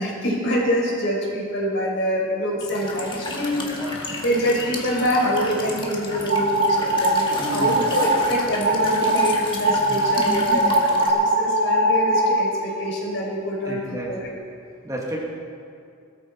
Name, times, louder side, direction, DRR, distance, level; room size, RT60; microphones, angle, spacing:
voice 1, 0.0-3.7 4.2-14.3, equal, 60° left, -4 dB, 5.2 m, -25 dB
Walk footsteps / Chirp tweet / Stream, 2.6-11.1, left 2 dB, 25° left, 1.9 m, -33 dB
voice 2, 3.6-4.1 7.4-7.8 9.9-10.8 13.7-14.3 14.8-15.2, equal, 15° right, -3 dB, 1.8 m, -31 dB
sound 1, 6.3-7.2 7.6-8.3 8.6-9.3 9.6-12.4, right 1 dB, 65° right, 3.5 m, -20 dB
20.5 x 14.0 x 4.4 m, 2.4 s
head